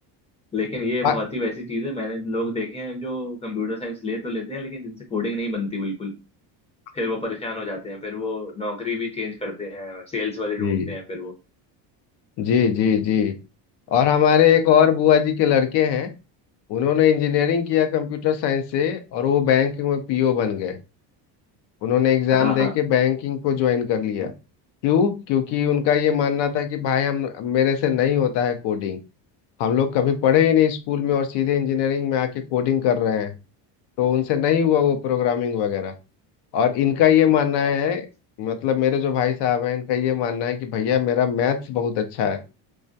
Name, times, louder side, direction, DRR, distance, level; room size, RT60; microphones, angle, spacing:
voice 1, 0.5-6.1 6.9-11.3 22.3-22.7, left 2 dB, 15° left, 1 dB, 0.6 m, -29 dB
voice 2, 12.4-13.3 13.9-16.1 16.7-20.8 21.8-24.3 24.8-29.0 29.6-33.3 34.0-35.9 36.5-38.1 38.4-42.4, left 9 dB, 65° left, 8 dB, 0.6 m, -21 dB
2.3 x 2.1 x 2.6 m, 0.29 s
cardioid pair, 115°, 46 cm